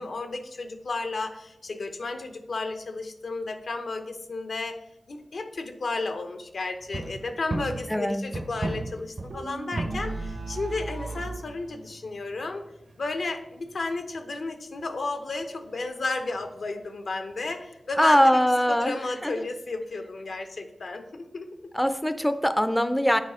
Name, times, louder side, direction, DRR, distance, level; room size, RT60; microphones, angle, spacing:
voice 1, 0.0-4.8 5.1-12.7 13.0-18.4 18.7-21.5, left 3 dB, 75° left, 7 dB, 0.7 m, -33 dB
sound 1, 6.8-14.5 14.8-15.0 15.4-15.5 15.7-15.8 16.0-16.1 16.4-16.7 17.3-17.5 17.9-18.0, right 2 dB, 45° right, 0.7 m, -37 dB
voice 2, 7.9-8.2 18.0-18.9 19.2-19.3 21.7-23.2, equal, 5° left, 11 dB, 0.4 m, -22 dB
sound 2, 9.3-11.4, right 3 dB, 90° right, 1.2 m, -36 dB
8.2 x 4.8 x 4.2 m, 0.87 s
cardioid pair, 60°, 0 cm